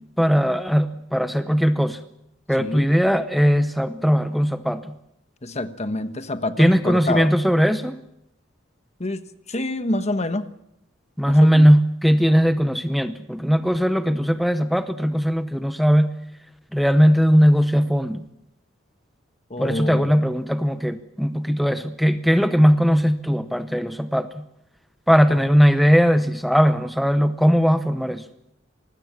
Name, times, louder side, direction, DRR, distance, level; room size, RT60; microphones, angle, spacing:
voice 1, 0.2-2.0 2.5-4.8 6.6-8.0 11.2-16.1 16.7-18.2 19.6-24.4 25.1-28.2, equal, ahead, 10 dB, 0.8 m, -19 dB
voice 2, 2.6-2.9 5.4-7.3 9.0-9.2 9.5-10.5 11.3-11.7 19.5-20.1 25.3-25.5, left 2 dB, 35° left, 10 dB, 1.2 m, -27 dB
25.0 x 20.0 x 7.4 m, 0.81 s
head